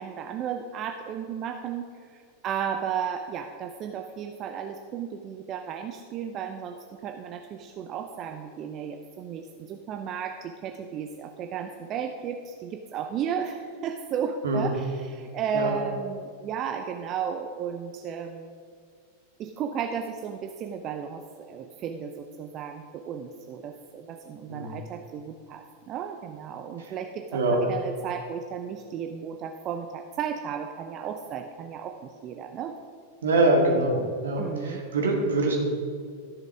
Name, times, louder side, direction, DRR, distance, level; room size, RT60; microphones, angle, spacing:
voice 1, 0.0-18.5 19.4-32.8 33.9-34.1 34.4-34.8, right 7 dB, 35° right, 5 dB, 0.6 m, -34 dB
voice 2, 24.5-24.8 27.3-27.6 33.2-34.0 34.2-35.6, right 2 dB, 65° right, 1 dB, 2.1 m, -24 dB
13.5 x 6.7 x 4.9 m, 2.2 s
figure-of-eight pair, 90°, 0 cm